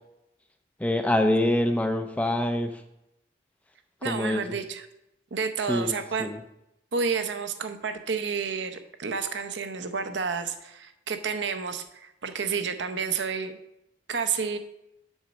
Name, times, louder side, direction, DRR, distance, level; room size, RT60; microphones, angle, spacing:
voice 1, 0.8-2.8 4.0-4.6 5.7-6.4, left 1 dB, 10° left, 6 dB, 0.4 m, -25 dB
voice 2, 4.0-4.8 5.3-6.3 6.9-13.6 14.1-14.6, right 5 dB, 70° right, 9 dB, 0.7 m, -30 dB
7.2 x 5.1 x 6.3 m, 0.87 s
head